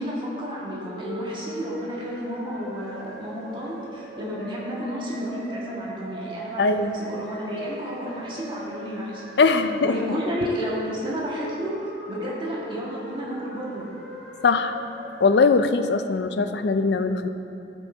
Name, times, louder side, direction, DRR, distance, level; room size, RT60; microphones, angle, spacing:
voice 1, 0.0-9.2 9.8-11.8 12.1-13.9, equal, 25° right, -5 dB, 1.7 m, -31 dB
sound 1, 0.8-15.5, right 1 dB, 5° left, 1.8 m, -39 dB
voice 2, 6.6-6.9 9.4-9.9 14.4-14.8 15.2-17.3, left 4 dB, 65° left, 9 dB, 0.4 m, -20 dB
11.5 x 6.2 x 4.4 m, 2.9 s
head